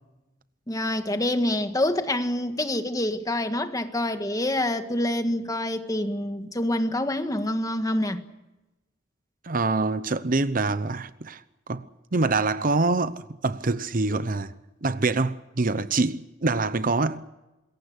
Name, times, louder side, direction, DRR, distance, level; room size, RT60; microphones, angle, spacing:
voice 1, 0.7-8.2, left 1 dB, 20° left, 1.7 m, -26 dB
voice 2, 9.4-11.4 11.7-11.8 12.1-14.5 14.8-17.3, right 3 dB, 45° right, 0.9 m, -25 dB
27.0 x 22.0 x 6.5 m
head